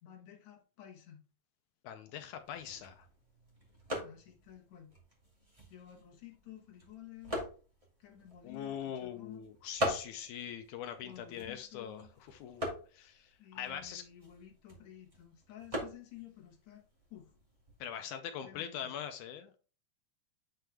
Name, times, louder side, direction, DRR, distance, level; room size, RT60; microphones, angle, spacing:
voice 1, 0.0-1.2 4.0-4.9 5.7-7.4 8.0-9.5 11.0-12.1 13.4-16.8 17.1-17.3 18.4-19.1, left 11 dB, 60° left, 2.3 m, -53 dB
voice 2, 1.8-3.1 8.4-14.0 17.8-19.5, left 9 dB, 80° left, 1.8 m, -42 dB
sound 1, 2.4-17.9, equal, 15° right, 1.4 m, -44 dB
9.2 x 4.6 x 3.4 m
omnidirectional pair, 3.9 m